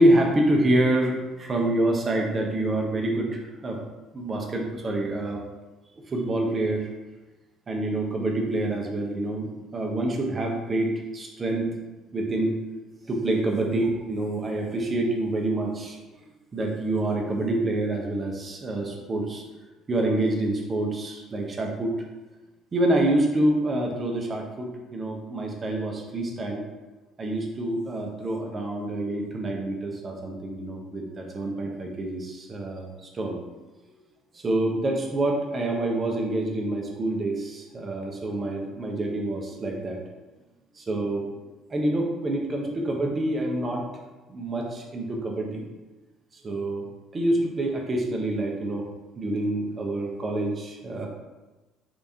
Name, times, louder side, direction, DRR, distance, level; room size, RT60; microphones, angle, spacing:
voice 1, 0.0-3.9 4.1-5.4 6.1-6.9 7.7-11.8 12.1-12.5 13.1-16.0 16.5-19.4 19.9-21.9 22.7-26.6 27.2-33.4 34.3-40.0 40.8-41.2 41.7-43.8 44.3-45.6 46.4-46.9 47.1-48.8 49.2-51.1, right 1 dB, 35° right, 0 dB, 0.8 m, -27 dB
3.4 x 3.4 x 2.7 m, 1.1 s
hypercardioid pair, 60°, 0 cm